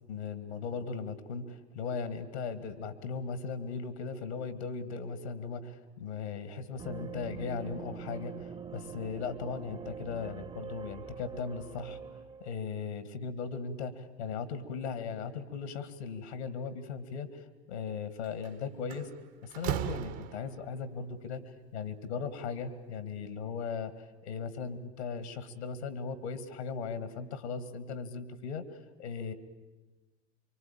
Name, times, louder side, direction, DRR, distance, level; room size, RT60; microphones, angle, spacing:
voice 1, 0.0-12.0 12.4-19.1 19.4-28.6 29.0-29.3, left 5 dB, 75° left, 12 dB, 2.1 m, -38 dB
sound 1, 6.8-12.5, right 6 dB, 15° right, 1.0 m, -44 dB
Slam, 18.2-18.5 18.9-20.8, right 13 dB, 45° right, 1.3 m, -36 dB
25.0 x 24.0 x 9.0 m, 1.2 s
figure-of-eight pair, 75°, 33 cm